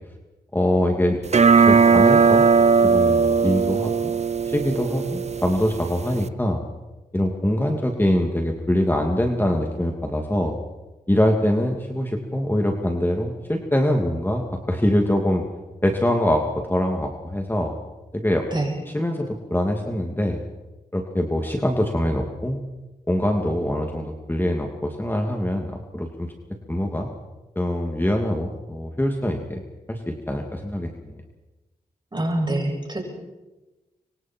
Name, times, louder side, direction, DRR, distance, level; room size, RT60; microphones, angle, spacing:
voice 1, 0.5-1.2 1.6-2.5 2.8-4.1 4.5-6.6 7.1-10.6 11.1-15.4 15.8-17.7 18.1-18.5 18.9-20.4 20.9-22.6 23.1-26.3 26.7-27.1 27.6-29.6 29.9-31.2, left 1 dB, 15° left, 2 dB, 2.6 m, -23 dB
sound 1, 1.3-6.3, right 5 dB, 45° right, 0.7 m, -18 dB
voice 2, 32.1-33.1, right 1 dB, 30° right, 0 dB, 7.2 m, -25 dB
25.0 x 24.5 x 4.6 m, 1.1 s
cardioid pair, 55°, 16 cm